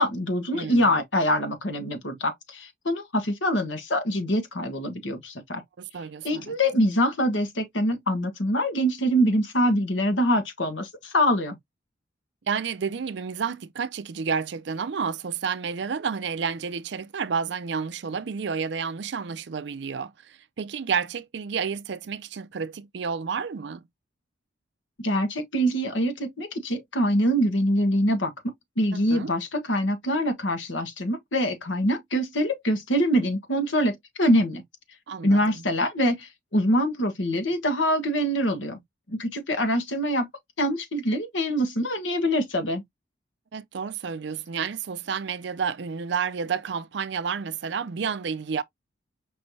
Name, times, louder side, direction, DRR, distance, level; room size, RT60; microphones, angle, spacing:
voice 1, 0.0-5.6 6.2-11.6 25.0-28.3 28.8-34.6 35.2-38.8 39.1-40.3 40.6-42.8, equal, 75° left, 1.3 m, -24 dB
voice 2, 0.5-0.9 5.8-6.5 12.5-23.8 28.9-29.3 35.1-35.6 43.5-48.6, right 6 dB, 65° right, 0.5 m, -30 dB
5.3 x 3.2 x 2.7 m
head